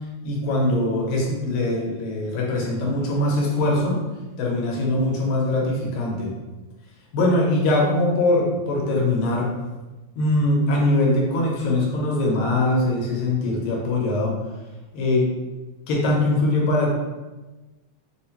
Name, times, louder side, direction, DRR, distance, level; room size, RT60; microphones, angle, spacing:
voice 1, 0.2-4.0 4.4-6.3 7.1-9.5 10.1-14.4 14.9-15.3 15.9-16.9, left 2 dB, 90° left, -3 dB, 2.5 m, -22 dB
6.3 x 2.2 x 2.8 m, 1.2 s
omnidirectional pair, 3.7 m